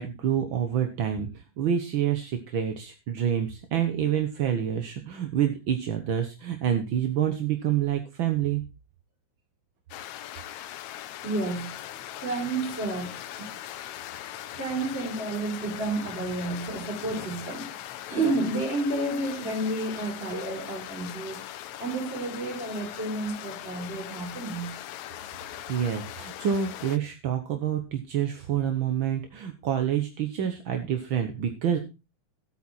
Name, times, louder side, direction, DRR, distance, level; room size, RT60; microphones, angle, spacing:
voice 1, 0.0-8.6 25.4-31.8, right 9 dB, 60° right, 6 dB, 1.3 m, -27 dB
sound 1, 9.9-27.0, left 13 dB, 75° left, 2.0 m, -40 dB
voice 2, 11.2-11.7 12.1-13.5 14.5-17.8 18.1-21.4 21.8-24.7, right 2 dB, 20° right, 2 dB, 4.5 m, -31 dB
13.5 x 8.7 x 4.2 m, 0.28 s
omnidirectional pair, 3.5 m